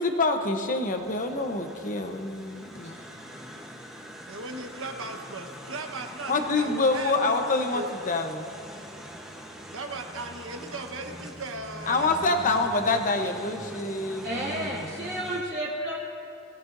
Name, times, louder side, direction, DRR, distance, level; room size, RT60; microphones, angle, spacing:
voice 1, 0.0-3.0 6.3-8.5 11.9-14.9, left 3 dB, 40° left, 5 dB, 1.0 m, -26 dB
sound 1, 0.7-15.4, equal, ahead, 1.1 m, -43 dB
voice 2, 4.3-7.9 9.7-12.9 13.2-13.4, right 2 dB, 70° right, 4 dB, 1.3 m, -38 dB
voice 3, 14.2-16.0, right 1 dB, 55° right, -9 dB, 2.6 m, -31 dB
20.5 x 16.5 x 2.7 m, 2.6 s
head